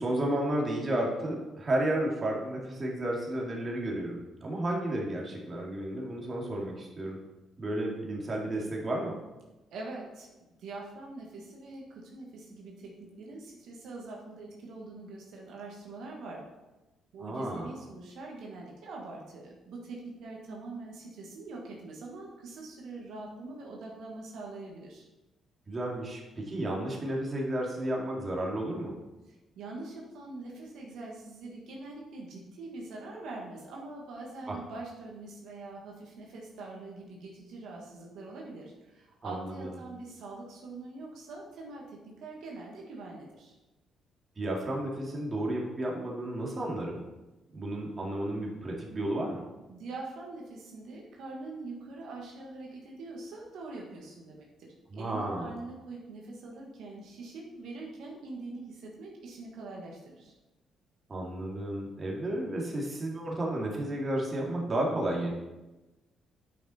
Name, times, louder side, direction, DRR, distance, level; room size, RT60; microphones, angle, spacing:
voice 1, 0.0-7.2 7.6-9.1 17.2-17.7 25.7-29.0 34.5-34.6 39.2-39.8 44.4-47.0 47.5-49.4 54.9-55.6 61.1-65.3, right 1 dB, 35° right, -2 dB, 2.3 m, -32 dB
voice 2, 9.7-10.3 10.6-16.4 17.1-25.0 29.3-43.5 49.7-60.3, right 3 dB, 80° right, -2 dB, 1.7 m, -43 dB
8.6 x 5.9 x 4.4 m, 1.1 s
cardioid pair, 90°, 0 cm